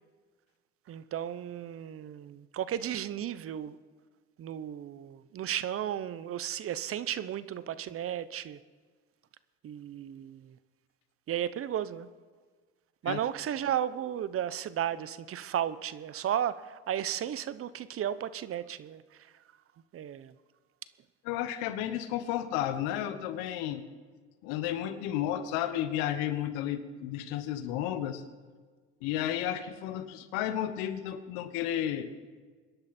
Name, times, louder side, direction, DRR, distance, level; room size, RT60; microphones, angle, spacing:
voice 1, 0.9-3.8 4.4-8.6 9.6-10.6 11.3-12.1 13.0-19.3 19.9-20.3, right 10 dB, 45° right, 0.8 m, -34 dB
voice 2, 21.2-23.8 24.4-28.2 29.0-32.1, left 11 dB, 85° left, 1.2 m, -32 dB
25.0 x 10.5 x 4.3 m
supercardioid pair, 90°, 31 cm